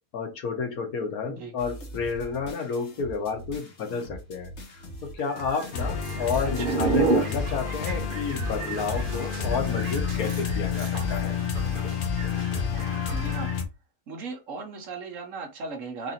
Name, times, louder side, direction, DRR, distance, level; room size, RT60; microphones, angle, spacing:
voice 1, 0.1-4.5 5.0-11.4, left 5 dB, 90° left, 1.6 m, -31 dB
voice 2, 1.2-1.5 6.4-6.8 13.1-13.5 14.1-16.1, right 4 dB, 65° right, 1.4 m, -37 dB
sound 1, 1.6-10.7, left 1 dB, 55° left, 1.4 m, -42 dB
sound 2, 5.2-13.6, right 4 dB, 40° right, 1.0 m, -32 dB
sound 3, 5.7-13.6, left 7 dB, 70° left, 1.2 m, -29 dB
4.0 x 2.7 x 4.2 m
omnidirectional pair, 1.5 m